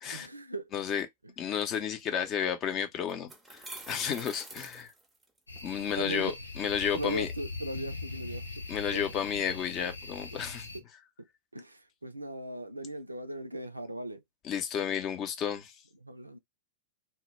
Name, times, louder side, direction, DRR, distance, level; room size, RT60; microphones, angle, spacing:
voice 1, 0.1-0.7 1.2-1.3 4.0-4.2 6.0-6.3 6.9-8.6 8.9-9.5 9.8-9.9 10.7-10.8 11.5-14.2 16.0-16.4, right 1 dB, 85° right, 0.3 m, -39 dB
voice 2, 0.7-1.1 1.4-3.6 3.9-4.9 5.6-7.3 8.7-10.7 14.4-15.7, left 8 dB, 30° left, 0.6 m, -32 dB
sound 1, 2.4-2.5 3.1-5.6, right 2 dB, 10° right, 0.6 m, -46 dB
sound 2, 5.5-10.8, left 3 dB, 80° left, 0.6 m, -41 dB
2.1 x 2.0 x 3.0 m
figure-of-eight pair, 95°, 0 cm